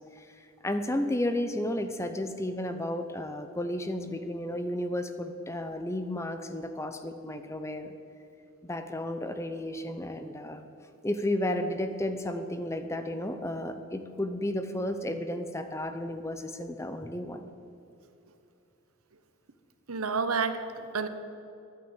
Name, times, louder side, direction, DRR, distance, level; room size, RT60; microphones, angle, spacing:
voice 1, 0.1-7.9 8.6-10.7 11.0-17.5, left 1 dB, 15° left, 8 dB, 0.6 m, -33 dB
voice 2, 19.9-21.1, right 5 dB, 85° right, 10 dB, 1.0 m, -30 dB
11.5 x 9.3 x 8.9 m, 2.7 s
head